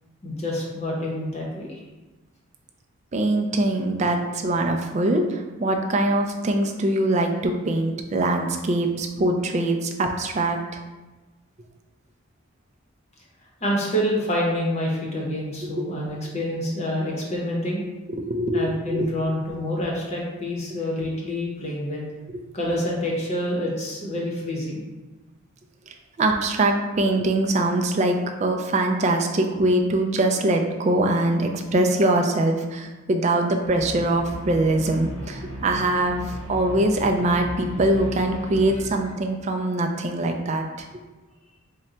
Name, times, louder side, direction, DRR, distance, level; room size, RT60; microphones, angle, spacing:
voice 1, 0.2-1.8 13.6-17.8 18.5-22.0 22.5-24.8, left 1 dB, 30° left, -3 dB, 0.8 m, -27 dB
voice 2, 3.1-10.6 18.1-19.1 26.2-40.9, right 2 dB, 35° right, 3 dB, 0.3 m, -23 dB
sound 1, 33.6-38.8, equal, 65° left, 1.0 m, -36 dB
3.7 x 2.2 x 4.2 m, 1.2 s
head